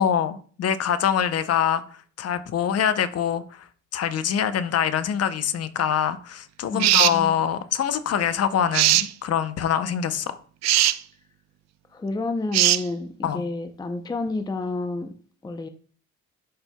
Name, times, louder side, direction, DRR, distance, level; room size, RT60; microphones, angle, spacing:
voice 1, 0.0-1.8 2.2-3.6 3.9-10.4 13.2-13.4, left 8 dB, 55° left, 0.7 m, -24 dB
voice 2, 6.7-7.4 11.9-15.1 15.4-15.7, left 3 dB, 15° left, 0.5 m, -30 dB
sound 1, 6.8-7.2 8.7-9.1 10.6-11.0 12.5-12.8, right 13 dB, 60° right, 0.4 m, -19 dB
11.0 x 4.4 x 2.2 m
cardioid pair, 90°, 30 cm